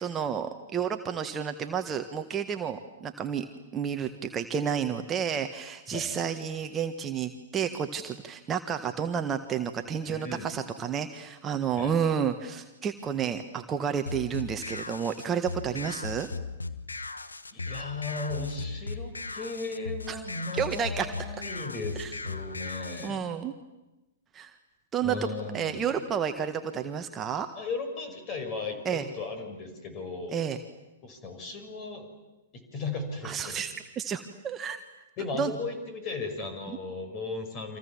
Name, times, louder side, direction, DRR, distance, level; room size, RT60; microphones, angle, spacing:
voice 1, 0.0-3.4 3.7-16.3 20.1-20.2 20.5-21.3 22.0-22.1 23.0-23.5 24.3-24.5 24.9-25.3 25.5-27.5 28.8-29.1 30.3-30.6 33.2-34.8 35.4-35.5 36.7-36.8, right 7 dB, 20° right, 6 dB, 1.5 m, -31 dB
voice 2, 10.1-10.5 11.8-12.1 17.5-23.2 25.0-25.9 27.6-30.4 31.0-32.1 32.5-33.6 35.2-37.8, left 3 dB, 30° left, 7 dB, 6.0 m, -36 dB
sound 1, 14.1-23.1, left 3 dB, 80° left, 1.4 m, -37 dB
29.5 x 26.0 x 7.3 m, 1.0 s
figure-of-eight pair, 110°, 0 cm